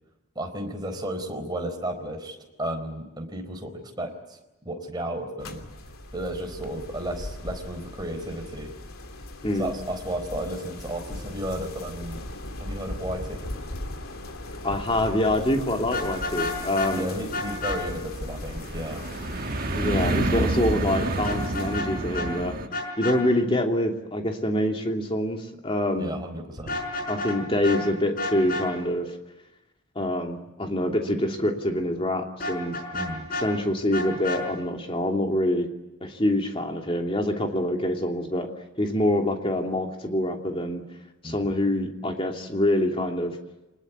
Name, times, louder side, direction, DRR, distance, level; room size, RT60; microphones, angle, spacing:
voice 1, 0.3-4.4 4.6-5.7 6.1-8.7 9.6-12.3 12.6-13.5 16.9-19.0 26.0-26.8 32.9-33.3 41.2-41.5, right 1 dB, 20° right, 4 dB, 4.2 m, -33 dB
sound 1, 5.4-21.8, left 1 dB, 75° left, 2.9 m, -38 dB
voice 2, 14.6-17.1 19.7-22.6 23.0-26.1 27.1-29.1 29.9-32.8 33.3-35.7 36.0-38.5 38.8-40.8 41.2-43.4, left 1 dB, 25° left, 2 dB, 2.9 m, -25 dB
Vehicle horn car horn honking, 15.8-16.9 17.3-17.8 21.2-21.9 22.1-22.3 22.7-23.2 26.6-27.4 27.6-27.8 28.2-28.7 32.4-33.5 33.9-34.4, left 3 dB, 40° left, 5.4 m, -30 dB
sound 2, 16.3-22.7, right 2 dB, 40° right, 1.5 m, -29 dB
26.0 x 20.5 x 9.6 m, 0.99 s
head